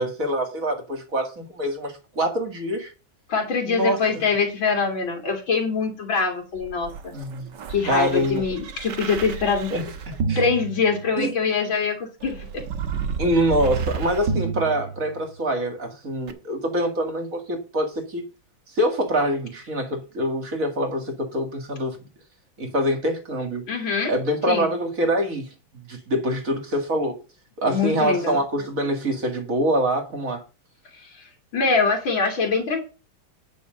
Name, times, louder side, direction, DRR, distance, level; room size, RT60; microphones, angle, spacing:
voice 1, 0.0-2.9 3.6-4.0 7.1-7.5 7.9-8.4 9.7-10.4 11.2-11.3 13.2-18.2 18.7-22.0 22.6-23.7 24.1-25.5 25.9-27.2 27.6-30.4, right 1 dB, 45° right, 2.4 m, -25 dB
voice 2, 3.3-7.1 7.7-9.7 10.4-12.6 23.7-24.1 24.5-24.7 27.7-28.3 31.0-31.3 31.5-32.8, left 5 dB, 80° left, 3.4 m, -24 dB
sound 1, 6.6-11.5 12.2-15.5 16.3-16.4, right 5 dB, 65° right, 1.7 m, -31 dB
10.0 x 5.9 x 6.4 m
omnidirectional pair, 2.1 m